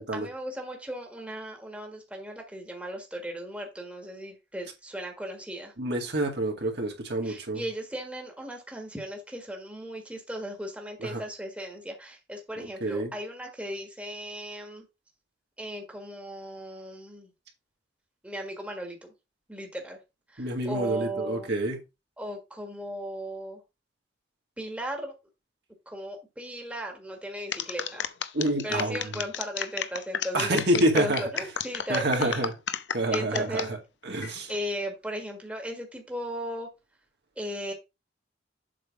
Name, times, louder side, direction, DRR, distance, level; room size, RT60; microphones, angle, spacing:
voice 1, 0.0-5.7 7.2-14.8 15.6-17.3 18.2-19.1 19.5-20.0 20.3-21.5 22.2-23.6 24.6-25.1 25.8-28.1 28.6-32.5 33.1-33.7 34.5-36.7 37.4-37.7, equal, 5° right, 1.6 m, -36 dB
voice 2, 5.8-7.6 11.0-11.2 12.6-13.1 20.4-21.8 28.3-29.1 30.3-31.2 31.9-32.5 32.9-33.8 34.0-34.5, right 1 dB, 65° right, 2.2 m, -28 dB
sound 1, 27.5-33.7 34.2-34.6, left 8 dB, 70° left, 0.7 m, -32 dB
7.6 x 3.5 x 5.9 m
head